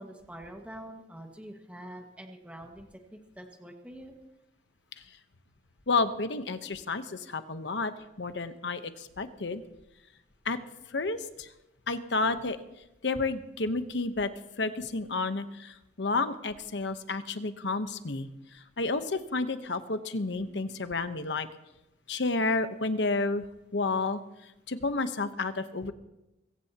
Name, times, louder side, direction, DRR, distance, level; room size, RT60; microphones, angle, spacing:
voice 1, 0.0-4.2 23.0-23.1 23.7-23.8, right 1 dB, 10° right, 2 dB, 1.8 m, -46 dB
voice 2, 5.9-7.9 8.2-9.6 10.4-10.6 10.9-11.5 11.9-12.6 13.0-14.3 14.6-18.3 18.8-21.5 22.1-23.4 23.7-24.2 24.7-25.9, left 3 dB, 80° left, 9 dB, 1.0 m, -30 dB
22.5 x 15.5 x 3.0 m, 0.93 s
head